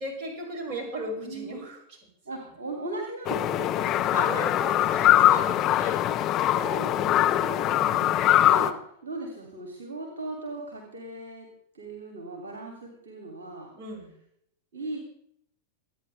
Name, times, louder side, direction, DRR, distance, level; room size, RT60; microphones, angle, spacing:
voice 1, 0.0-2.0 4.1-6.0 7.8-8.3 13.7-14.1, right 1 dB, 35° right, -1 dB, 6.0 m, -36 dB
voice 2, 1.2-1.7 2.2-4.4 6.5-7.8 8.1-11.5 11.7-13.7 14.7-15.0, right 2 dB, 65° right, 2 dB, 2.8 m, -38 dB
sound 1, 3.3-8.7, left 13 dB, 35° left, 1.0 m, -22 dB
26.5 x 9.6 x 3.4 m, 0.69 s
figure-of-eight pair, 90°, 0 cm